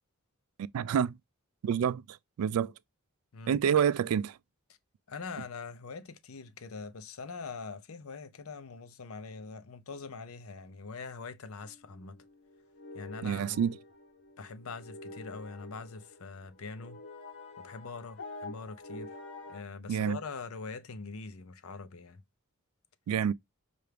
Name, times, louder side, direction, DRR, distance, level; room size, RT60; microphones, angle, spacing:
voice 1, 0.7-1.1 1.6-2.0 2.4-2.7 3.5-4.3 13.2-13.7 19.9-20.2 23.1-23.3, right 8 dB, 90° right, 0.3 m, -27 dB
voice 2, 5.1-12.2 12.9-13.7 14.4-17.0 17.6-19.2 19.5-22.2, left 4 dB, 75° left, 0.6 m, -43 dB
sound 1, 11.6-19.6, left 2 dB, 60° left, 1.0 m, -48 dB
5.7 x 2.5 x 3.2 m
head